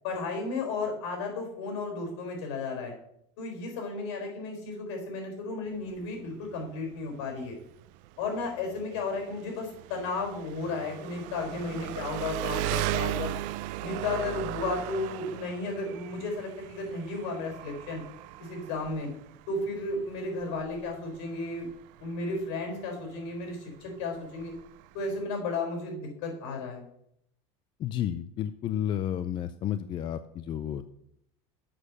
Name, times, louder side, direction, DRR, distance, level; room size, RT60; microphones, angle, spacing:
voice 1, 0.0-2.9 3.4-7.6 8.2-13.3 13.8-18.0 18.4-19.1 19.5-21.7 22.0-24.5 24.9-26.8, left 3 dB, 75° left, 2 dB, 4.2 m, -34 dB
Engine, 5.7-25.2, right 16 dB, 60° right, 0.4 m, -38 dB
voice 2, 27.8-30.8, left 10 dB, 35° left, 11 dB, 0.4 m, -31 dB
7.5 x 6.4 x 6.6 m, 0.75 s
cardioid pair, 145°, 15 cm